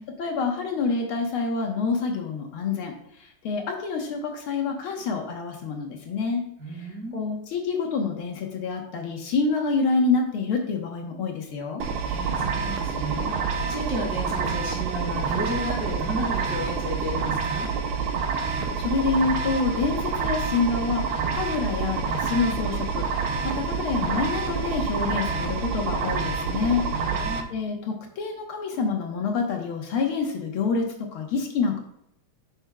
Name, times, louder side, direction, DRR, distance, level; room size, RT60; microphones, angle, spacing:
voice 1, 0.2-2.9 3.2-6.4 6.8-11.8 18.4-26.8 27.5-31.8, left 4 dB, 75° left, 2 dB, 1.9 m, -27 dB
voice 2, 6.6-7.2 12.0-17.7 26.9-27.5, right 1 dB, 45° right, -3 dB, 3.1 m, -33 dB
sound 1, 11.8-27.4, right 5 dB, 75° right, 1.5 m, -28 dB
9.4 x 6.1 x 2.3 m, 0.73 s
omnidirectional pair, 2.4 m